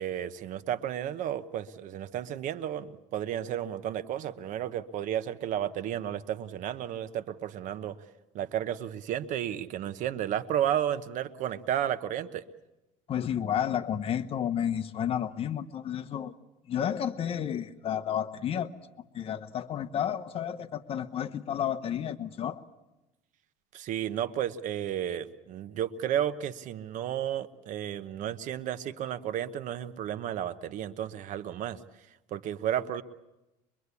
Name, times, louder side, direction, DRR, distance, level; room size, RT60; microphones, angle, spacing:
voice 1, 0.0-8.0 8.3-12.4 23.7-31.8 32.3-33.0, right 10 dB, 55° right, 13 dB, 1.0 m, -32 dB
voice 2, 13.1-16.3 16.7-18.7 19.1-22.6, left 9 dB, 35° left, 10 dB, 1.1 m, -31 dB
23.5 x 23.0 x 8.3 m, 0.99 s
cardioid pair, 135°, 16 cm